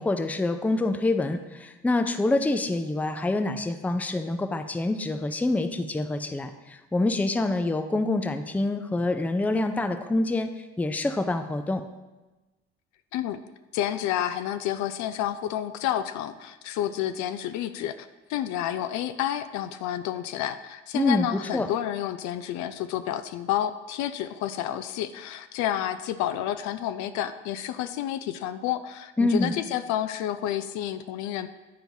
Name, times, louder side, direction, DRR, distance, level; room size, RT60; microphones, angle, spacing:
voice 1, 0.0-10.5 10.8-11.8 20.9-21.7 29.2-29.5, left 2 dB, 5° left, 8 dB, 0.4 m, -26 dB
voice 2, 13.7-31.5, left 11 dB, 60° left, 11 dB, 0.5 m, -30 dB
9.2 x 4.5 x 2.7 m, 1.1 s
hypercardioid pair, 60°, 33 cm